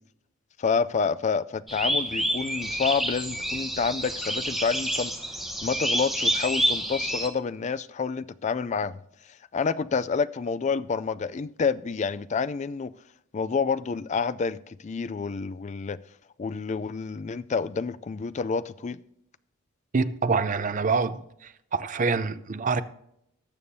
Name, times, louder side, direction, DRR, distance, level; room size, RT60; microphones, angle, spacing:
voice 1, 0.6-5.1 5.6-9.0 9.5-12.9 13.3-16.0 16.4-19.0, left 5 dB, 35° left, 0.3 m, -28 dB
sound 1, 1.7-7.3, equal, ahead, 1.0 m, -28 dB
voice 2, 19.9-22.8, right 4 dB, 40° right, 0.5 m, -26 dB
19.0 x 7.2 x 2.7 m
head